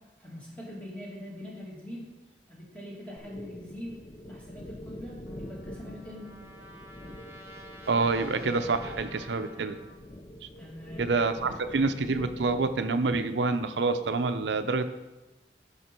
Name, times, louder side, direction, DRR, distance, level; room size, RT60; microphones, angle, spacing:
voice 1, 0.2-2.1 2.5-4.0 4.3-6.3 10.6-11.1, equal, 5° left, -5 dB, 2.3 m, -43 dB
sound 1, 3.2-12.8, left 1 dB, 25° left, 0.5 m, -45 dB
Trumpet, 5.2-9.9, equal, 15° right, 1.2 m, -50 dB
voice 2, 7.9-9.8 10.4-10.5 11.0-14.9, right 3 dB, 80° right, 9 dB, 0.6 m, -27 dB
11.0 x 5.6 x 4.5 m, 1.1 s
head